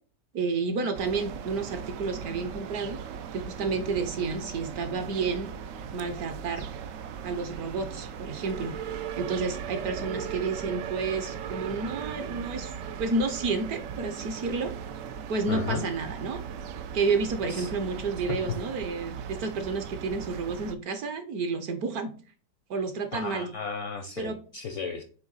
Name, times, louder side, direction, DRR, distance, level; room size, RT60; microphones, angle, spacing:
voice 1, 0.3-3.0 3.3-5.5 5.9-6.7 7.2-8.7 9.2-12.7 13.0-14.7 15.3-16.4 16.9-22.1 22.7-23.5 24.2-24.4, right 4 dB, 65° right, 8 dB, 1.1 m, -30 dB
sound 1, 0.9-20.7, right 7 dB, 85° right, 0.7 m, -38 dB
voice 2, 15.5-15.9 17.5-17.7 18.3-18.4 23.1-25.0, left 5 dB, 65° left, 5 dB, 0.7 m, -34 dB
7.9 x 3.0 x 3.9 m, 0.40 s
omnidirectional pair, 1.9 m